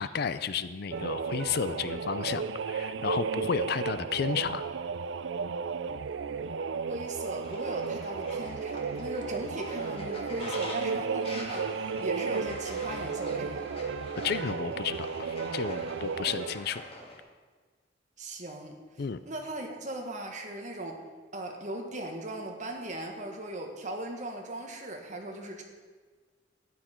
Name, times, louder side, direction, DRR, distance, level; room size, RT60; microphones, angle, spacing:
voice 1, 0.0-4.7 14.2-16.8 19.0-19.2, left 6 dB, 55° left, 13 dB, 0.5 m, -32 dB
sound 1, 0.9-16.6, right 5 dB, 75° right, 0.4 m, -34 dB
voice 2, 6.8-13.7 18.2-18.8 19.3-21.0 21.3-25.6, right 1 dB, 40° right, 2 dB, 1.6 m, -38 dB
Fowl, 7.4-17.2, left 1 dB, 30° left, 2.1 m, -45 dB
13.5 x 10.0 x 4.5 m, 1.5 s
head